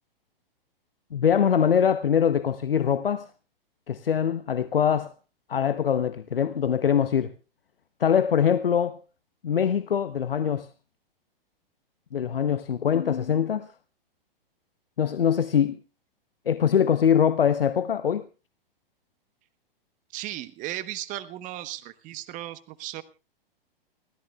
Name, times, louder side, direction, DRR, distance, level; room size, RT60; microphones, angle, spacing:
voice 1, 1.1-3.3 3.9-5.1 5.5-7.3 8.0-9.0 9.4-10.7 12.1-13.7 15.0-15.8 16.5-18.2, left 8 dB, 70° left, 0.9 m, -23 dB
voice 2, 20.1-23.0, right 14 dB, 25° right, 1.1 m, -36 dB
30.0 x 14.0 x 2.4 m
figure-of-eight pair, 110°, 29 cm